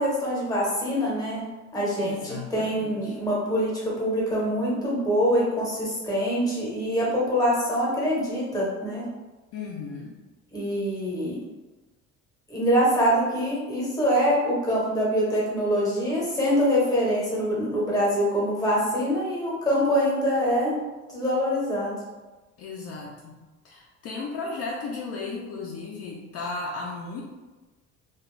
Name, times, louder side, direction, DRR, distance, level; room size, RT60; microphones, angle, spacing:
voice 1, 0.0-1.4 1.7-9.0 10.5-11.4 12.5-20.7 21.1-21.9, equal, 15° left, -5 dB, 0.8 m, -24 dB
voice 2, 2.0-3.2 9.5-10.1 22.6-23.4 23.6-27.2, left 3 dB, 55° left, -3 dB, 0.5 m, -35 dB
2.5 x 2.2 x 3.1 m, 1.2 s
cardioid pair, 150°, 29 cm